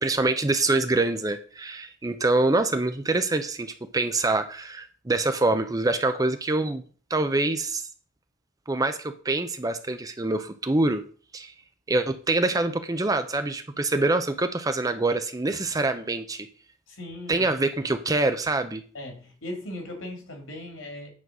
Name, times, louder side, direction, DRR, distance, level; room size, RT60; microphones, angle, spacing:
voice 1, 0.0-6.8 7.1-7.9 8.7-11.0 11.3-11.5 11.9-16.5 17.3-18.8, right 2 dB, 15° right, 9 dB, 0.6 m, -25 dB
voice 2, 16.9-17.5 18.9-21.1, left 1 dB, 70° left, 3 dB, 2.9 m, -38 dB
9.5 x 3.9 x 6.1 m, 0.42 s
head